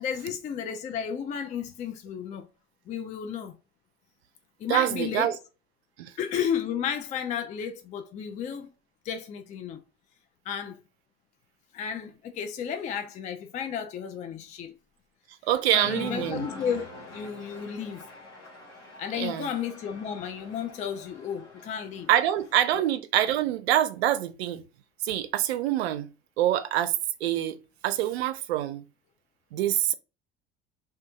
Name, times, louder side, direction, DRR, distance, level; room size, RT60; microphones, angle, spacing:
voice 1, 0.0-2.5 2.9-3.6 4.6-5.3 6.2-8.7 9.0-9.8 10.5-10.8 11.7-14.7 15.7-18.1 19.0-22.1 22.7-22.8, left 8 dB, 25° left, 0.3 m, -33 dB
voice 2, 4.7-5.4 6.0-6.1 15.5-16.5 19.2-19.5 22.1-24.6 25.0-26.1 26.4-26.9 27.2-27.6 27.8-28.8 29.5-29.9, right 12 dB, 65° right, 0.5 m, -25 dB
Cheering, 15.8-22.8, left 2 dB, 80° left, 1.0 m, -45 dB
2.5 x 2.5 x 3.5 m
figure-of-eight pair, 60°, 34 cm